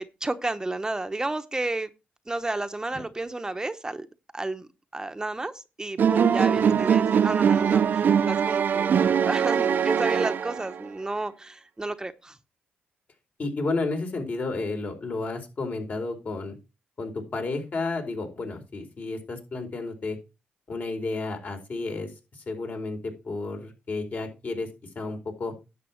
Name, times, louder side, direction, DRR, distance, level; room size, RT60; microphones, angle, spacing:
voice 1, 0.0-1.9 2.3-4.1 4.3-12.4, right 2 dB, 20° right, 10 dB, 0.9 m, -32 dB
sound 1, 6.0-10.9, right 7 dB, 60° right, 0.6 m, -22 dB
voice 2, 13.4-16.5 17.0-20.2 20.7-22.1 22.5-23.0 23.2-24.7 24.9-25.5, left 3 dB, 50° left, 4 dB, 4.5 m, -31 dB
10.5 x 7.6 x 4.5 m, 0.28 s
cardioid pair, 65°, 4 cm